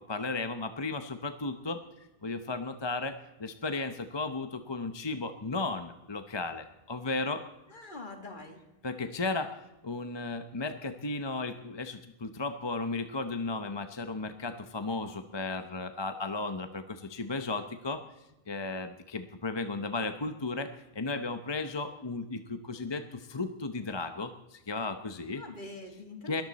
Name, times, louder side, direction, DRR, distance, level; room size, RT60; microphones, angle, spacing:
voice 1, 0.1-1.8 2.2-7.4 8.8-9.6 9.8-18.0 18.5-25.4 26.3-26.4, left 3 dB, 30° left, 8 dB, 0.8 m, -35 dB
voice 2, 7.7-8.6 25.3-26.4, left 2 dB, 50° left, 5 dB, 2.3 m, -44 dB
21.5 x 14.5 x 4.2 m, 0.98 s
omnidirectional pair, 1.0 m